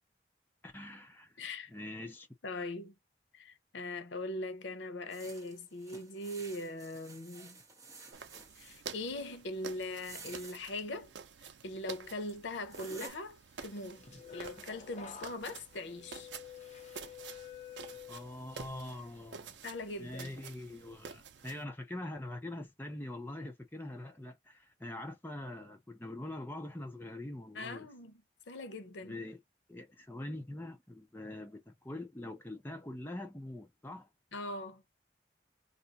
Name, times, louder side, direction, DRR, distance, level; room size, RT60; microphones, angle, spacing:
voice 1, 0.6-1.4 1.7-2.3 18.1-19.6 20.0-27.9 29.0-29.4 29.7-34.1, left 1 dB, 10° left, 0.7 m, -43 dB
voice 2, 1.4-1.7 2.4-2.9 3.3-7.6 8.6-11.1 11.6-14.0 14.3-16.3 19.6-20.4 27.5-28.2 28.5-29.2 34.3-34.8, left 2 dB, 85° left, 0.7 m, -41 dB
sound 1, 5.1-8.8 9.8-10.6 11.7-11.8 12.3-12.4 12.7-13.1, right 3 dB, 20° right, 1.0 m, -51 dB
sound 2, 8.1-21.6, right 6 dB, 80° right, 0.5 m, -50 dB
sound 3, 13.7-18.7 19.1-19.5, left 8 dB, 40° left, 1.1 m, -50 dB
2.5 x 2.4 x 4.0 m
head